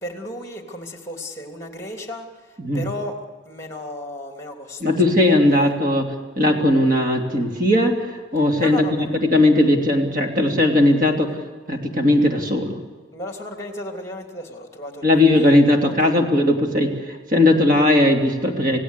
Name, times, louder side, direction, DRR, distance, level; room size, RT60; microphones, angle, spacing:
voice 1, 0.0-3.2 3.4-5.0 5.5-5.7 8.6-9.1 13.1-16.2, left 1 dB, 15° left, 4 dB, 3.0 m, -34 dB
voice 2, 4.8-6.1 6.4-11.3 11.7-12.8 15.0-18.8, left 1 dB, 45° right, 2 dB, 3.1 m, -18 dB
28.5 x 17.0 x 8.3 m, 1.4 s
head